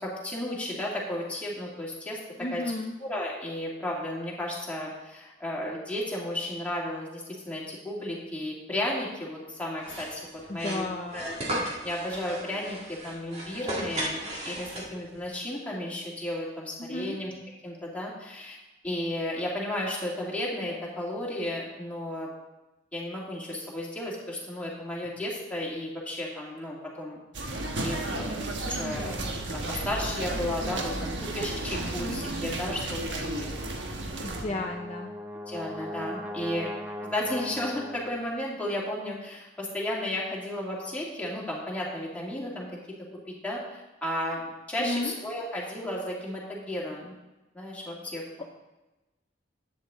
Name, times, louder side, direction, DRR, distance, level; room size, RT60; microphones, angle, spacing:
voice 1, 0.0-2.2 2.5-2.6 3.0-10.2 10.5-10.9 11.1-11.4 11.8-17.3 17.6-18.6 18.8-22.3 22.9-27.2 27.8-29.2 29.5-33.5 34.4-34.8 35.5-36.7 37.0-42.7 43.4-44.4 44.7-47.1 47.5-48.4, left 1 dB, 5° left, -5 dB, 2.4 m, -33 dB
voice 2, 2.4-3.0 10.5-11.2 16.8-17.2 32.0-32.2 34.2-35.1 44.8-45.1, left 2 dB, 35° left, 1 dB, 0.6 m, -33 dB
sound 1, 9.8-15.2, right 1 dB, 35° right, 2.2 m, -35 dB
sound 2, 27.3-34.4, right 2 dB, 70° right, 1.3 m, -33 dB
Brass instrument, 34.1-38.4, left 1 dB, 10° right, 0.8 m, -39 dB
11.0 x 8.7 x 3.7 m, 1.1 s
head